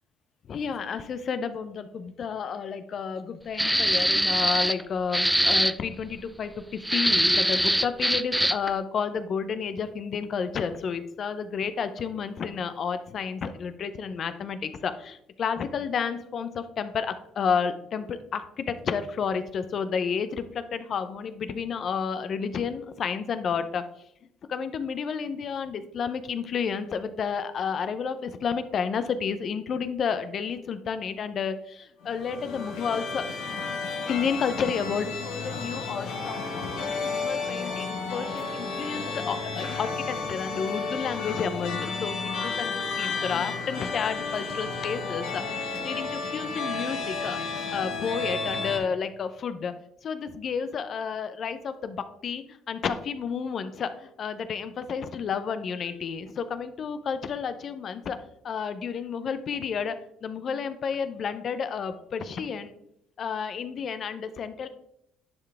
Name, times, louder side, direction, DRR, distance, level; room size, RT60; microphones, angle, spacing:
voice 1, 0.5-23.8 24.5-33.3 34.1-47.4 47.7-49.7 50.0-58.2 58.4-60.0 60.2-62.7 63.2-64.7, left 6 dB, 55° left, 11 dB, 0.6 m, -31 dB
sound 1, 3.6-4.8 5.1-5.7 6.8-8.7, right 1 dB, 5° right, 0.3 m, -23 dB
sound 2, 32.0-48.8, left 4 dB, 75° left, 1.5 m, -32 dB
10.5 x 4.7 x 3.5 m, 0.76 s
supercardioid pair, 75°, 0 cm